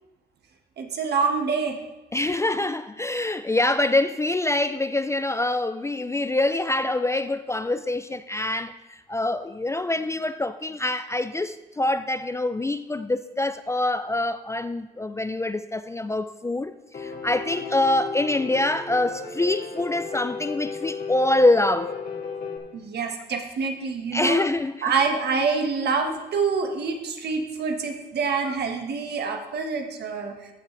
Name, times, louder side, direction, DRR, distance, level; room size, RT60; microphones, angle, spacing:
voice 1, 0.8-1.8 22.7-24.4 24.8-30.3, right 5 dB, 65° right, 1.5 m, -26 dB
voice 2, 2.1-8.7 9.1-21.9 24.1-24.9 28.5-28.6, left 2 dB, 15° left, 0.4 m, -25 dB
Piano, 16.9-22.6, left 5 dB, 50° left, 1.8 m, -34 dB
14.0 x 6.4 x 3.3 m
cardioid pair, 80°, 18 cm